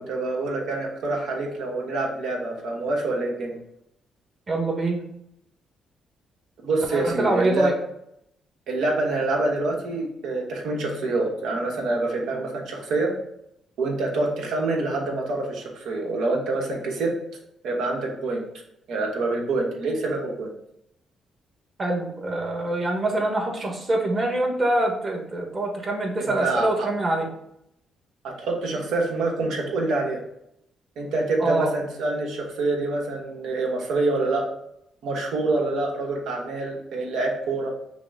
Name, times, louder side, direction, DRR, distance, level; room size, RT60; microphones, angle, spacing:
voice 1, 0.0-3.5 6.6-7.7 8.7-13.1 13.8-17.1 17.6-18.4 18.9-20.5 26.2-26.9 28.2-30.2 31.0-34.4 35.0-37.7, right 2 dB, 80° right, 0 dB, 1.1 m, -26 dB
voice 2, 4.5-5.0 6.9-7.7 21.8-27.3 31.4-31.7, right 2 dB, 35° right, 0 dB, 1.3 m, -25 dB
5.8 x 2.1 x 3.6 m, 0.77 s
cardioid pair, 90°, 0 cm